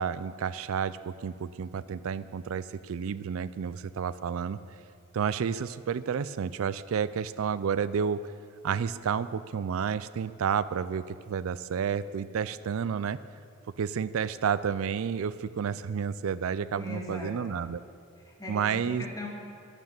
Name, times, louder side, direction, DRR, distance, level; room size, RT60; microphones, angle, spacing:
voice 1, 0.0-4.6 5.1-8.2 8.6-13.2 13.8-17.8 18.5-19.0, right 7 dB, 70° right, 15 dB, 0.4 m, -30 dB
voice 2, 16.7-17.4 18.2-19.3, left 2 dB, 15° left, -2 dB, 2.3 m, -39 dB
12.0 x 9.5 x 7.6 m, 2.3 s
head